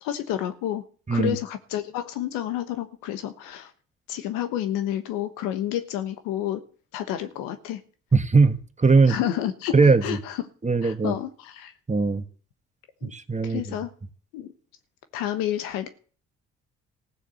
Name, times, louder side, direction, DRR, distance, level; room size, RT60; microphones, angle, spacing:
voice 1, 0.0-0.8 1.1-3.7 4.1-6.6 6.9-7.8 9.1-9.7 10.0-10.5 10.8-11.7 13.0-13.1 13.4-13.9 14.3-14.5 15.1-15.9, left 12 dB, 90° left, 1.3 m, -30 dB
voice 2, 8.1-9.1 9.7-10.0 10.6-11.1 11.9-12.2 13.1-13.6, right 4 dB, 20° right, 1.4 m, -19 dB
15.5 x 6.6 x 7.8 m
supercardioid pair, 60°, 32 cm